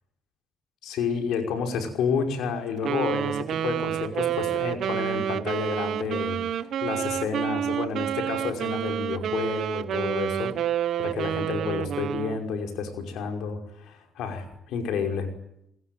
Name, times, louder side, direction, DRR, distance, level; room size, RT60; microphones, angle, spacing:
voice 1, 0.8-10.5 11.0-15.3, left 6 dB, 85° left, 5 dB, 5.5 m, -30 dB
Wind instrument woodwind instrument, 2.8-12.4, right 10 dB, 70° right, 1.2 m, -29 dB
29.0 x 20.5 x 9.4 m, 0.77 s
cardioid pair, 90°, 0 cm